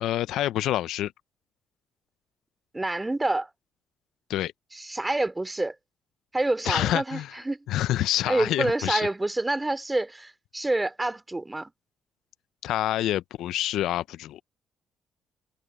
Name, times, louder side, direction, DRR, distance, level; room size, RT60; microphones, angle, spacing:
voice 1, 0.0-1.1 4.3-4.5 6.6-7.4 7.7-9.1 12.6-14.4, left 13 dB, 85° left, 0.5 m, -27 dB
voice 2, 2.7-3.5 4.8-5.7 6.3-7.2 7.4-7.6 8.3-11.7, right 2 dB, 15° right, 3.0 m, -27 dB
cardioid pair, 90°, 0 cm